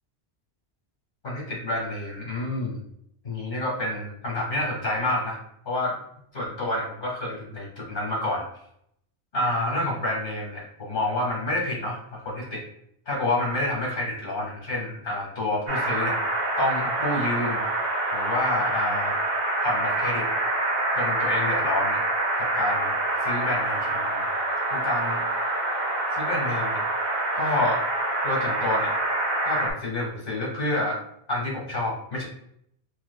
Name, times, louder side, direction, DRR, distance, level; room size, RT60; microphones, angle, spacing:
voice 1, 1.2-2.8 3.2-5.9 6.3-8.5 9.3-12.6 13.1-16.2 16.6-17.6 18.1-19.1 19.6-20.2 20.9-22.0 22.4-22.9 23.2-24.2 24.7-25.2 26.1-26.8 27.3-27.8 28.2-28.9 29.4-31.0 31.3-32.2, left 1 dB, 50° left, -3 dB, 1.6 m, -28 dB
sound 1, 15.7-29.7, right 2 dB, 35° right, 0.5 m, -26 dB
4.4 x 2.4 x 2.2 m, 0.72 s
omnidirectional pair, 1.1 m